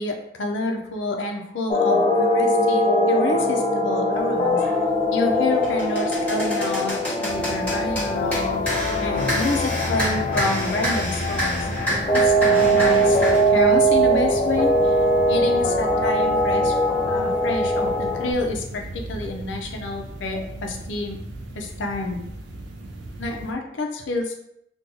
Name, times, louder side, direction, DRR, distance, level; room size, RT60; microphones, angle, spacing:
voice 1, 0.0-4.6 5.1-11.7 12.1-13.2 13.5-14.9 15.3-16.8 17.1-18.8 19.1-21.2 21.5-22.2 23.2-24.4, left 2 dB, 80° left, 2 dB, 0.5 m, -28 dB
sound 1, 1.7-18.3, equal, 30° left, 0.3 m, -21 dB
sound 2, 4.6-4.7 5.3-13.5, equal, 5° left, 1.3 m, -28 dB
sound 3, 7.3-23.5, right 2 dB, 70° right, 0.5 m, -37 dB
2.7 x 2.3 x 3.6 m, 0.77 s
head